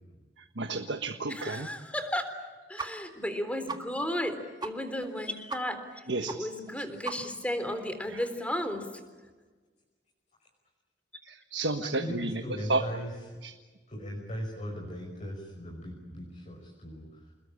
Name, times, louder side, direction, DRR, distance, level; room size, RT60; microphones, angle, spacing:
voice 1, 0.6-1.7 6.1-6.5 8.1-8.2 11.2-12.8 13.4-13.5, right 2 dB, 80° right, 6 dB, 1.4 m, -32 dB
voice 2, 1.3-2.3 2.7-9.0, left 1 dB, 10° left, 8 dB, 3.7 m, -34 dB
sound 1, 2.8-2.9 3.2-3.3 3.7-3.8 4.2-4.3 4.6-4.7 5.0-5.1 5.5-5.6 5.9-6.0 6.3-6.4 6.7-6.8 7.0-7.5, right 4 dB, 25° right, 1.8 m, -37 dB
voice 3, 11.8-13.1 13.9-17.3, equal, 40° left, -1 dB, 5.6 m, -39 dB
28.5 x 21.0 x 8.7 m, 1.4 s
head